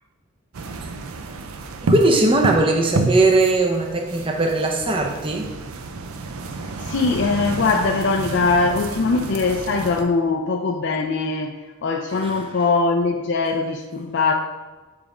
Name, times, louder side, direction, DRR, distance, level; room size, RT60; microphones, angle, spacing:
sound 1, 0.5-10.0, right 3 dB, 75° right, 0.5 m, -29 dB
voice 1, 1.8-5.5 12.1-12.5, right 2 dB, 25° right, 2 dB, 0.5 m, -19 dB
voice 2, 6.8-11.5 11.8-14.3, left 4 dB, 55° left, 2 dB, 0.4 m, -21 dB
7.2 x 3.5 x 4.8 m, 1.3 s
head